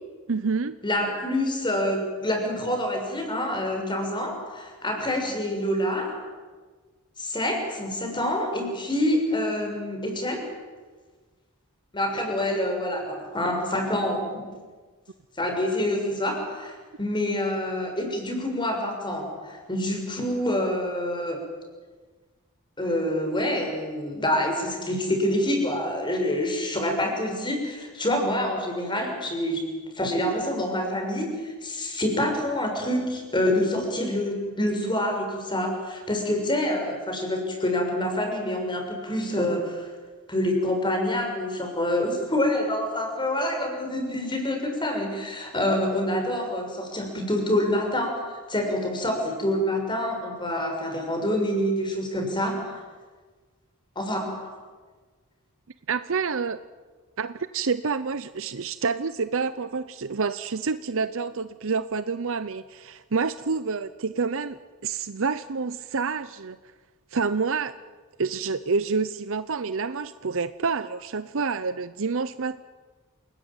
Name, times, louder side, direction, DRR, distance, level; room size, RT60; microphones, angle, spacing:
voice 1, 0.3-0.8 55.9-56.6 57.2-64.6 64.8-66.6 67.1-67.7 68.2-72.6, right 5 dB, 60° right, 13 dB, 0.7 m, -28 dB
voice 2, 0.8-6.2 7.2-10.4 11.9-14.4 15.4-21.5 22.8-39.9 40.3-52.8 54.0-54.5, left 1 dB, 20° left, 3 dB, 6.2 m, -27 dB
28.5 x 19.5 x 9.0 m, 1.4 s
head